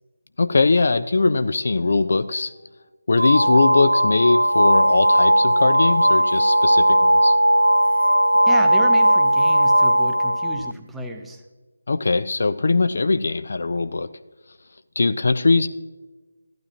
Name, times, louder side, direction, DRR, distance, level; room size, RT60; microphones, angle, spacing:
voice 1, 0.4-2.5 3.1-7.3 11.9-14.1 15.0-15.7, left 3 dB, 50° left, 13 dB, 0.4 m, -20 dB
sound 1, 3.2-10.7, right 1 dB, 85° right, 0.3 m, -17 dB
voice 2, 8.5-11.4, right 1 dB, 5° right, 2 dB, 0.7 m, -32 dB
15.0 x 12.0 x 2.8 m, 1.3 s
figure-of-eight pair, 155°, 0 cm